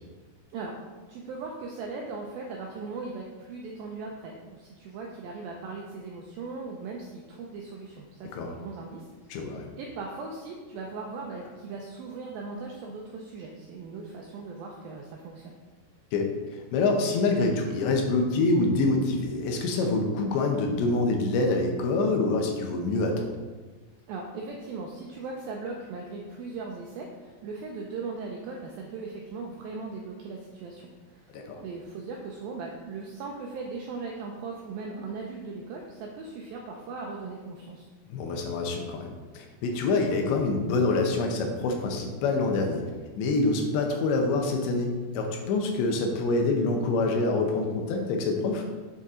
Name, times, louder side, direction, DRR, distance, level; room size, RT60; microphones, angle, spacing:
voice 1, 1.1-15.5 24.1-31.3 31.6-37.9, right 4 dB, 85° right, 0 dB, 2.1 m, -38 dB
voice 2, 9.3-9.6 16.1-23.4 31.3-31.6 38.1-42.8 43.2-48.6, left 3 dB, 80° left, 2 dB, 3.2 m, -26 dB
7.7 x 6.7 x 3.8 m, 1.3 s
omnidirectional pair, 5.0 m